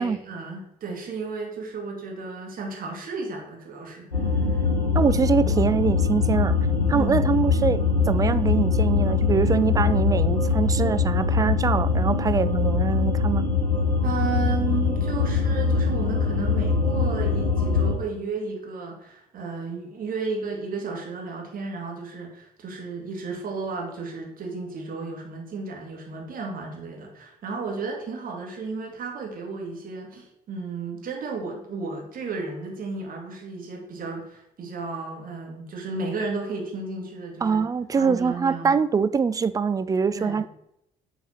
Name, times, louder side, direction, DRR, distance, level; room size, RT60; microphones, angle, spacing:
voice 1, 0.0-4.6 6.9-7.3 14.0-37.6 38.0-38.8 40.1-40.5, right 4 dB, 45° right, 1 dB, 2.0 m, -33 dB
sound 1, 4.1-18.0, left 4 dB, 90° left, 0.8 m, -22 dB
voice 2, 4.9-6.5 6.9-13.5 37.4-40.5, right 5 dB, 15° right, 14 dB, 0.4 m, -24 dB
8.1 x 4.0 x 4.3 m, 0.79 s
figure-of-eight pair, 50°, 20 cm